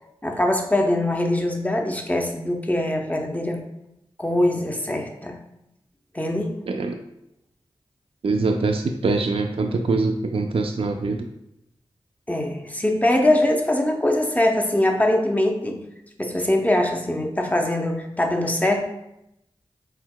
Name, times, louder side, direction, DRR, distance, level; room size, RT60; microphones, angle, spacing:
voice 1, 0.2-3.6 4.2-5.4 6.1-6.5 12.3-15.8 16.2-18.8, left 1 dB, 15° left, 2 dB, 0.6 m, -22 dB
voice 2, 8.2-11.2, right 3 dB, 60° right, 4 dB, 0.4 m, -23 dB
4.5 x 3.8 x 2.2 m, 0.85 s
cardioid pair, 50°, 11 cm